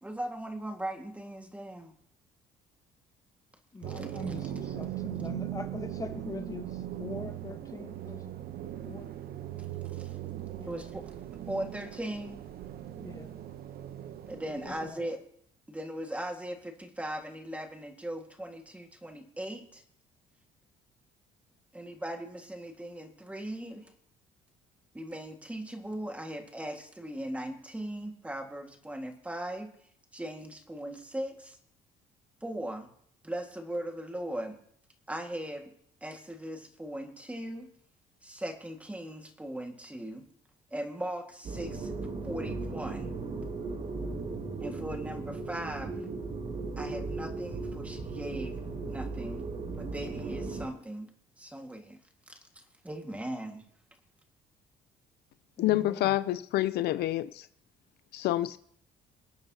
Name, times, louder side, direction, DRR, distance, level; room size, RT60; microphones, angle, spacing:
voice 1, 0.0-1.9 9.9-10.1 10.7-11.0 11.5-12.4 14.3-15.2 15.7-19.8 21.7-23.9 24.9-29.7 30.1-31.6 32.4-32.9 33.2-34.6 35.1-35.7 36.0-37.7 38.2-40.2 40.7-41.9 42.2-43.1 44.6-45.9 46.8-49.5 49.8-51.1 51.4-52.0 52.3-52.4 52.8-53.6, right 1 dB, 10° right, 1.8 m, -39 dB
voice 2, 3.7-8.3 8.8-9.1 10.6-10.8 13.0-13.4 14.7-15.2 55.6-56.2, left 3 dB, 20° left, 1.2 m, -43 dB
sound 1, 3.8-14.9, right 12 dB, 65° right, 0.9 m, -39 dB
sound 2, 41.4-50.7, right 3 dB, 50° right, 2.7 m, -37 dB
voice 3, 55.6-57.5 58.1-58.6, left 15 dB, 75° left, 0.5 m, -28 dB
25.0 x 8.7 x 2.9 m
cardioid pair, 110°, 17 cm